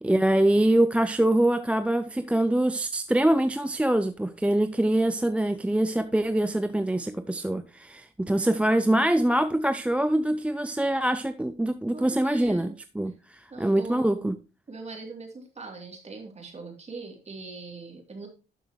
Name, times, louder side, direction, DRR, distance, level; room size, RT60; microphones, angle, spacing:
voice 1, 0.0-14.4, right 1 dB, 5° right, 0.5 m, -24 dB
voice 2, 8.7-9.1 11.9-12.7 13.5-14.3 14.7-18.3, right 3 dB, 35° right, 3.1 m, -41 dB
12.0 x 6.3 x 3.1 m
cardioid pair, 90°, 20 cm